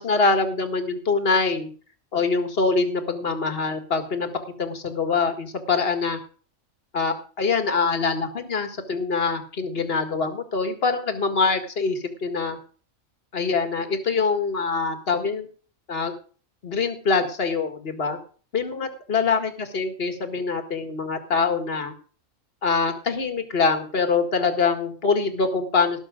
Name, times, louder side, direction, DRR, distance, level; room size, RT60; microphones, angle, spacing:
voice 1, 0.0-1.7 2.1-4.3 4.6-6.2 6.9-12.6 13.3-15.5 15.9-16.1 16.6-18.2 18.5-21.9 22.6-26.0, left 4 dB, 50° left, 6 dB, 2.0 m, -24 dB
18.0 x 6.6 x 5.0 m, 0.41 s
omnidirectional pair, 1.4 m